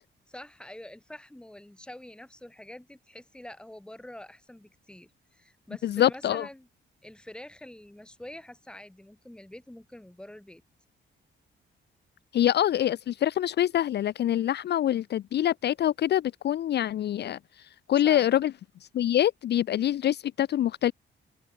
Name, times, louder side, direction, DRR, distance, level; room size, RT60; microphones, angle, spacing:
voice 1, 0.3-6.7 7.0-10.6 17.9-18.4, left 1 dB, 5° left, 1.6 m, -46 dB
voice 2, 5.8-6.5 12.3-17.4 17.9-18.5 18.9-20.9, left 11 dB, 60° left, 0.5 m, -25 dB
open air
wide cardioid pair, 145°, 20 cm